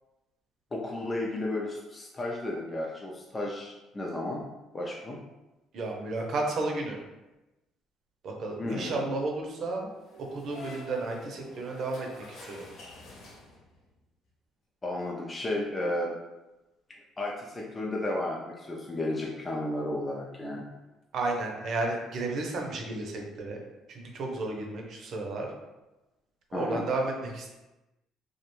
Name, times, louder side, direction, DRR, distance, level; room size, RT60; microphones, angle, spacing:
voice 1, 0.7-4.5 4.7-5.2 8.6-9.0 14.8-16.1 17.2-20.7 26.5-26.8, left 1 dB, 25° left, -2 dB, 0.4 m, -33 dB
voice 2, 5.7-7.0 8.2-9.9 10.3-12.1 12.5-12.7 21.1-23.6 23.9-25.5 26.5-27.5, right 2 dB, 60° right, 1 dB, 0.6 m, -32 dB
sound 1, 10.0-13.9, left 2 dB, 70° left, 0.7 m, -48 dB
2.3 x 2.1 x 3.0 m, 1.0 s
supercardioid pair, 80°, 0 cm